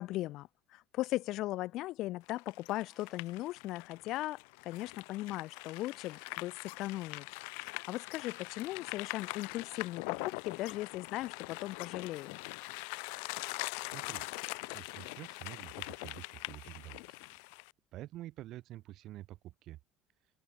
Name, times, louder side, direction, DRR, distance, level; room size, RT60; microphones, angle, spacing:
voice 1, 0.0-7.3 7.5-12.4, left 17 dB, 60° left, 0.8 m, -38 dB
sound 1, 2.3-17.7, left 40 dB or more, 80° left, 1.2 m, -43 dB
sound 2, 2.7-3.4 5.7-6.5 8.6-9.6 11.6-12.5, left 2 dB, 10° left, 6.8 m, -67 dB
voice 2, 13.8-14.3 14.7-17.3 17.9-19.8, right 15 dB, 55° right, 1.4 m, -48 dB
open air
cardioid pair, 130°, 0 cm